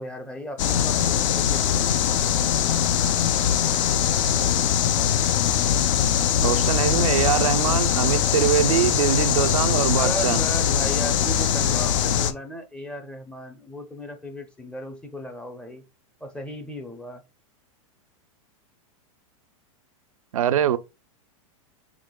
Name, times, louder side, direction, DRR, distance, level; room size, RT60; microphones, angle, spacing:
voice 1, 0.0-1.9 9.9-15.8 16.2-17.2, equal, 5° left, 0.6 m, -36 dB
sound 1, 0.6-12.3, left 9 dB, 70° left, 0.5 m, -22 dB
voice 2, 6.4-10.4 20.3-20.8, right 10 dB, 90° right, 0.5 m, -23 dB
5.0 x 3.3 x 2.2 m
hypercardioid pair, 125°, 17 cm